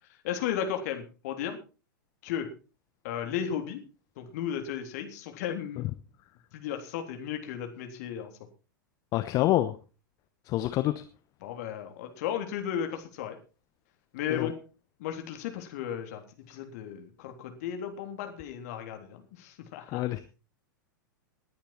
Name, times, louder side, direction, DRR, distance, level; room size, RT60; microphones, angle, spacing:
voice 1, 0.2-1.6 2.2-2.5 3.0-3.8 4.2-5.9 6.5-8.3 11.4-13.4 14.1-14.5 15.0-20.0, left 9 dB, 50° left, 5 dB, 3.5 m, -35 dB
voice 2, 9.1-9.8 10.5-10.9 14.3-14.5 19.9-20.2, left 15 dB, 35° left, 11 dB, 1.0 m, -26 dB
19.5 x 10.0 x 4.5 m, 0.35 s
figure-of-eight pair, 95°, 11 cm